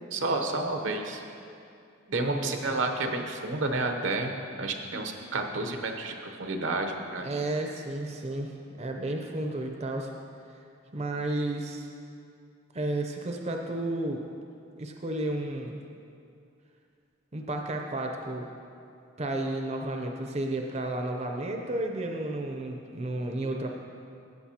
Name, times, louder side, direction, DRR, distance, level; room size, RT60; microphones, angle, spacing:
voice 1, 0.1-1.2 2.1-7.4, right 2 dB, 75° right, 4 dB, 0.8 m, -30 dB
voice 2, 2.2-2.5 7.2-10.1 10.9-11.9 12.7-14.2 14.8-15.8 17.3-18.5 19.2-23.7, right 1 dB, 35° right, 3 dB, 0.6 m, -32 dB
14.5 x 8.1 x 2.8 m, 2.5 s
head